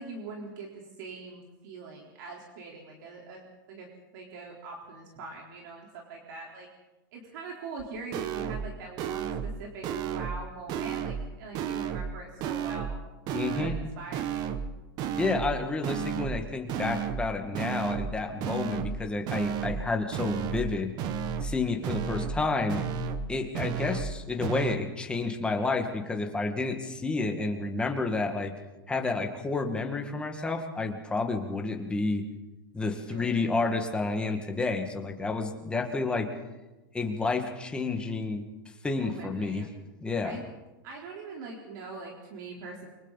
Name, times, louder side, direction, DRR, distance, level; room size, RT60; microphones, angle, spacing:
voice 1, 0.0-3.9 4.1-6.7 7.1-13.0 13.3-14.5 33.1-33.5 38.9-39.7 40.2-40.5 40.8-42.9, right 3 dB, 60° right, -1 dB, 4.1 m, -43 dB
sound 1, 7.8-7.9 8.1-8.7 9.0-9.5 9.8-10.4 10.7-11.3 11.5-12.1 12.4-13.0 13.3-13.8 14.1-14.7 15.0-15.5 15.8-16.4 16.7-17.3 17.5-18.1 18.4-19.0 19.3-19.8 20.1-20.7 21.0-21.5 21.8-22.4 22.7-23.3 23.5-24.1 24.4-24.8, right 7 dB, 35° right, 1.2 m, -32 dB
voice 2, 13.3-13.8 15.2-20.9 21.4-22.8 23.3-28.5 28.9-32.2 32.7-36.3 36.9-38.4 38.8-39.6 40.0-40.4, left 3 dB, 10° left, 4 dB, 2.0 m, -30 dB
29.0 x 24.0 x 4.2 m, 1.1 s
supercardioid pair, 150°, 12 cm